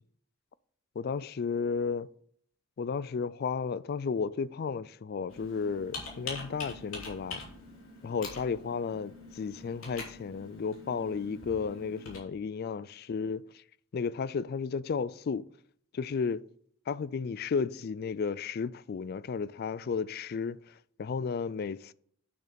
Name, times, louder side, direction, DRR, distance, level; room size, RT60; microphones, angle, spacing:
voice 1, 1.0-2.1 2.8-7.4 8.0-13.6 13.9-15.5 15.9-16.4 16.9-21.9, left 5 dB, 50° left, 0.3 m, -33 dB
Computer keyboard, 5.3-12.2, left 3 dB, 80° left, 3.0 m, -44 dB
8.7 x 6.5 x 5.2 m
head